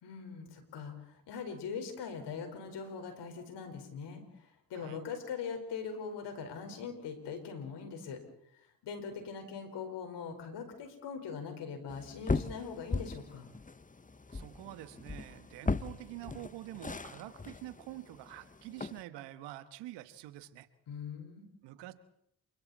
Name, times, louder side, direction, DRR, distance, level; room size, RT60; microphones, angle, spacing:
voice 1, 0.0-4.2 4.7-8.2 8.8-13.5 20.9-21.5, left 6 dB, 80° left, 5 dB, 4.8 m, -41 dB
sound 1, 11.9-19.0, left 3 dB, 20° left, 1.1 m, -38 dB
voice 2, 14.3-20.7 21.6-21.9, right 15 dB, 90° right, 12 dB, 1.4 m, -47 dB
29.0 x 25.0 x 4.3 m, 0.73 s
supercardioid pair, 50°, 41 cm